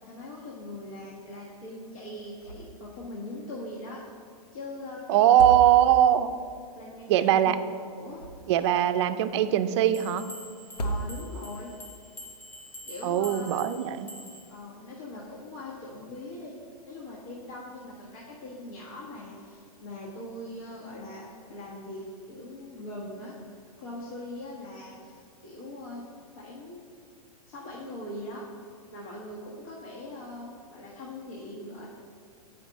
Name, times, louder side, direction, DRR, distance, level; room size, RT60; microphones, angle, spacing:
voice 1, 0.0-4.0 4.5-5.4 6.7-7.5 8.0-8.2 10.8-11.7 12.8-13.6 14.5-16.5 16.9-23.5 23.8-26.0 26.3-26.8 27.5-28.4 28.9-31.9, left 1 dB, 60° left, -5 dB, 1.4 m, -41 dB
sound 1, 2.4-2.9 3.2-3.3 5.2-6.2 7.9-8.8 10.6-11.6, right 2 dB, 85° left, 0.9 m, -34 dB
voice 2, 5.1-6.3 7.1-7.6 8.5-10.3 13.0-14.1, right 11 dB, 45° right, 10 dB, 0.4 m, -21 dB
sound 2, 9.9-14.6, equal, 10° left, 0.7 m, -46 dB
8.0 x 5.2 x 4.0 m, 2.3 s
hypercardioid pair, 135°, 20 cm